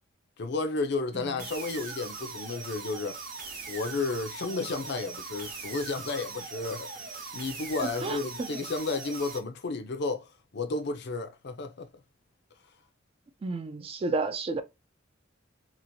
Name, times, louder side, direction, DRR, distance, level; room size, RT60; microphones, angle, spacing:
voice 1, 0.4-3.2 3.7-11.9, left 3 dB, 55° left, 0.5 m, -32 dB
sound 1, 1.4-9.4, right 4 dB, 45° right, 0.8 m, -41 dB
voice 2, 13.4-14.6, right 3 dB, 30° right, 0.3 m, -30 dB
2.9 x 2.4 x 2.6 m
head